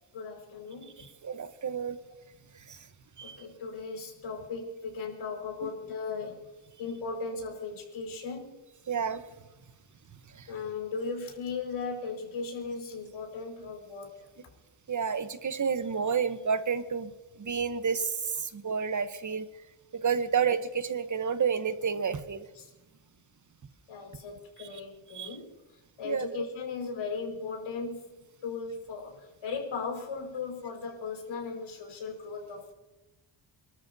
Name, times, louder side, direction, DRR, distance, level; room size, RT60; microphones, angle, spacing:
voice 1, 0.1-1.1 3.2-6.4 6.8-8.6 10.5-14.1 22.6-22.7 23.9-25.5 26.0-28.0 28.4-32.7, left 4 dB, 85° left, 1 dB, 5.3 m, -37 dB
voice 2, 1.0-2.0 2.7-2.8 3.2-3.4 5.6-5.7 8.9-9.2 10.3-10.5 14.9-17.1 17.4-19.5 19.9-22.5 24.6-24.7 25.1-25.4 26.0-26.3, right 6 dB, 40° right, 10 dB, 1.0 m, -30 dB
29.5 x 13.0 x 2.8 m, 1.0 s
cardioid pair, 105°, 46 cm